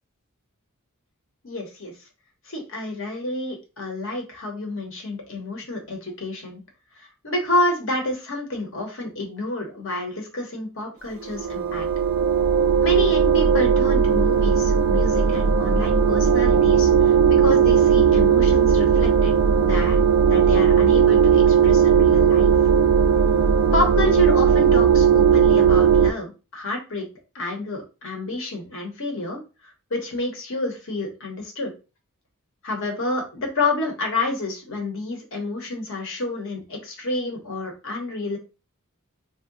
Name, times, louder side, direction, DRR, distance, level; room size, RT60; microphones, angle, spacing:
voice 1, 1.4-1.9 2.5-6.6 7.0-11.9 12.8-19.3 19.6-20.0 20.2-22.5 23.7-27.1 27.3-29.4 29.9-31.7 32.6-38.4, left 2 dB, 60° left, 3 dB, 1.0 m, -29 dB
sound 1, 11.2-26.1, right 7 dB, 60° right, 0.3 m, -17 dB
2.7 x 2.1 x 3.8 m, 0.31 s
head